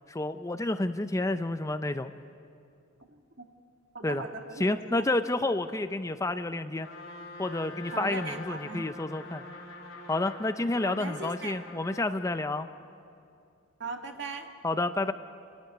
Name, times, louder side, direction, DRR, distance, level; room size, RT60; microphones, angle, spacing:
voice 1, 0.1-2.1 4.0-4.2 4.6-6.9 7.4-9.4 10.1-12.7 14.6-15.1, left 2 dB, 15° left, 10 dB, 0.5 m, -30 dB
voice 2, 3.9-5.0 7.9-8.9 10.8-11.6 13.8-14.5, right 3 dB, 60° right, 4 dB, 1.8 m, -38 dB
Trumpet, 6.8-12.1, left 2 dB, 80° left, 3.6 m, -45 dB
29.0 x 12.5 x 9.5 m, 2.5 s
head